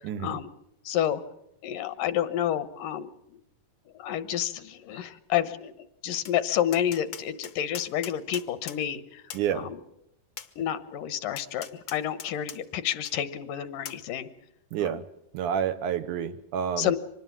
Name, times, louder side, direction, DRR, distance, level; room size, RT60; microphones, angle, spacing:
voice 1, 0.0-0.4 9.3-9.7 14.7-15.0 15.3-16.9, right 8 dB, 70° right, 8 dB, 2.3 m, -29 dB
voice 2, 0.9-1.2 1.6-3.1 4.0-5.7 6.0-9.2 9.6-9.8 10.6-11.7 11.9-14.3 14.8-14.9 16.8-17.0, left 10 dB, 75° left, 14 dB, 2.6 m, -29 dB
Tap, 6.2-6.4 6.7-8.8 9.3-9.5 10.4-10.5 11.4-12.6 13.0-13.1 13.8-14.0, left 8 dB, 60° left, 1.3 m, -40 dB
25.0 x 20.5 x 7.4 m, 0.81 s
omnidirectional pair, 3.9 m